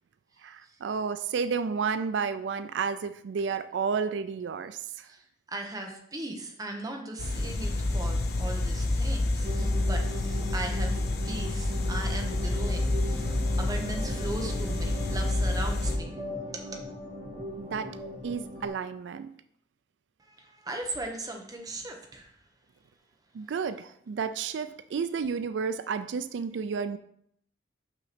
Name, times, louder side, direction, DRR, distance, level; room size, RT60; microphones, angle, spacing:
voice 1, 0.4-5.1 17.6-18.0 18.2-19.3 23.3-27.0, right 5 dB, 85° right, 12 dB, 0.4 m, -31 dB
voice 2, 5.0-11.0 11.2-16.2 16.5-16.8 20.2-22.3, right 2 dB, 20° right, 2 dB, 1.0 m, -38 dB
sound 1, 7.2-16.0, left 2 dB, 60° left, 0.8 m, -28 dB
sound 2, 9.4-18.7, equal, 45° right, 2.1 m, -38 dB
6.0 x 5.8 x 4.2 m, 0.70 s
head